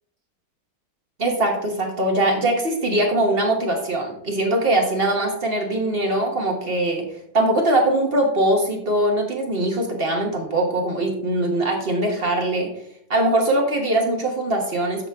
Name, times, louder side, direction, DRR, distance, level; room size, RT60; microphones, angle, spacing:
voice 1, 1.2-7.0 7.3-12.7 13.1-15.1, right 1 dB, 35° right, 1 dB, 1.1 m, -21 dB
8.4 x 6.1 x 3.5 m, 0.72 s
omnidirectional pair, 2.3 m